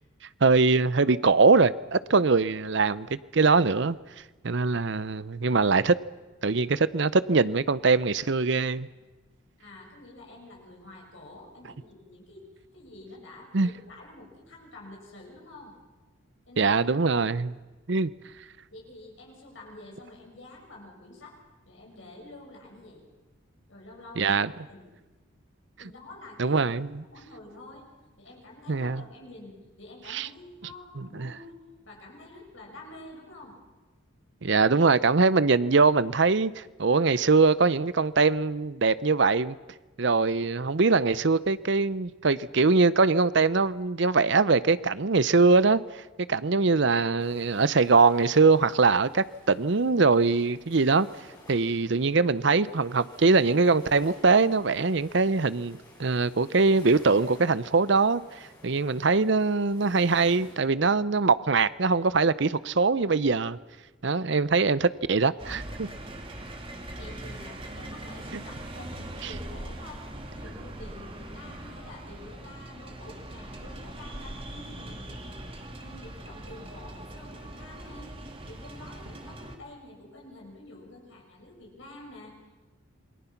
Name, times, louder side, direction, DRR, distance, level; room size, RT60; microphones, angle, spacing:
voice 1, 0.4-4.0 4.4-6.0 6.4-8.9 13.5-13.7 16.6-17.6 17.9-18.1 24.2-24.5 26.4-27.0 28.7-29.0 30.1-30.3 31.0-31.3 34.4-39.5 40.0-46.0 46.3-51.1 51.5-58.2 58.6-63.6 64.0-65.9, right 4 dB, 55° right, 17 dB, 0.6 m, -22 dB
voice 2, 9.6-12.5 12.7-15.8 16.5-16.8 18.7-21.4 21.7-23.1 23.7-24.9 25.8-26.6 27.0-27.9 28.2-33.6 66.9-75.4 75.7-78.2 78.4-82.6, left 2 dB, 65° left, -1 dB, 6.5 m, -48 dB
sound 1, 47.2-60.5, left 1 dB, 20° left, 6.7 m, -54 dB
sound 2, 65.4-79.6, right 1 dB, 25° right, 2.1 m, -41 dB
28.0 x 22.5 x 5.9 m, 1.2 s
head